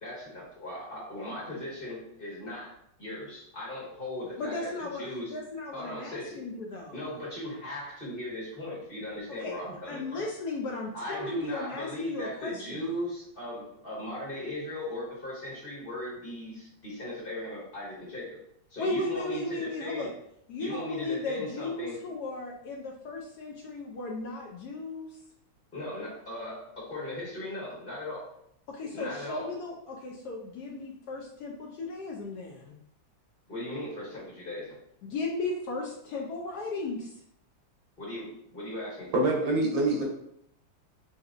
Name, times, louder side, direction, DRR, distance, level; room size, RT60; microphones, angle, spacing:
voice 1, 0.0-2.7 3.0-5.3 5.7-6.4 6.9-10.2 10.9-18.4 18.7-20.1 20.6-22.0 25.7-28.3 28.9-29.5 33.5-34.8 38.0-39.2, left 1 dB, 30° left, -7 dB, 1.5 m, -38 dB
voice 2, 4.4-7.1 9.4-9.6 9.9-12.9 18.8-20.1 20.5-25.2 28.7-32.8 35.0-37.1, left 3 dB, 70° left, -1 dB, 1.0 m, -36 dB
voice 3, 39.1-40.0, right 2 dB, 85° right, -2 dB, 1.8 m, -25 dB
5.7 x 2.8 x 2.4 m, 0.72 s
omnidirectional pair, 2.0 m